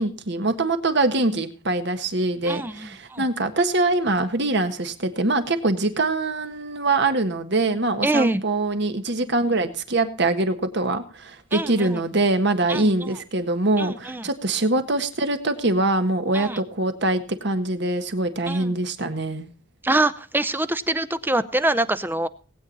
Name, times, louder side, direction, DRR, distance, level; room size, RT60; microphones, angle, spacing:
voice 1, 0.0-19.5, right 2 dB, 65° right, 8 dB, 1.6 m, -23 dB
voice 2, 2.5-3.2 8.0-8.4 11.5-12.0 12.7-13.1 13.8-14.2 16.3-16.6 18.5-18.7 19.8-22.3, right 2 dB, 10° right, 13 dB, 0.6 m, -25 dB
19.5 x 8.8 x 4.0 m, 0.38 s
head